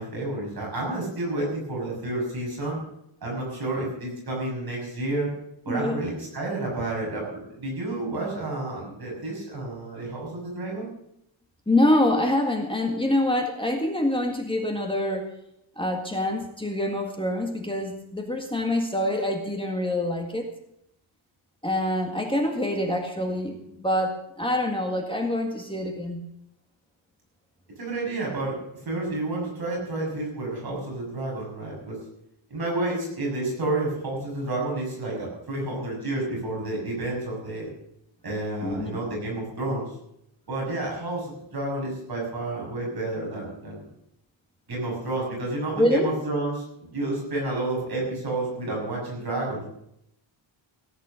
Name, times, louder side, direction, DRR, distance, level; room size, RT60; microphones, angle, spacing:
voice 1, 0.0-2.8 3.2-5.3 5.6-10.9 27.8-28.6 28.8-32.0 32.5-37.7 38.2-39.9 40.5-43.9 44.7-49.7, right 2 dB, 50° right, -3 dB, 6.6 m, -30 dB
voice 2, 5.7-6.0 11.7-15.3 15.8-20.5 21.6-26.2 38.6-38.9 45.8-46.1, left 1 dB, 10° left, 2 dB, 1.8 m, -25 dB
18.0 x 10.0 x 6.5 m, 0.79 s
wide cardioid pair, 175°, 48 cm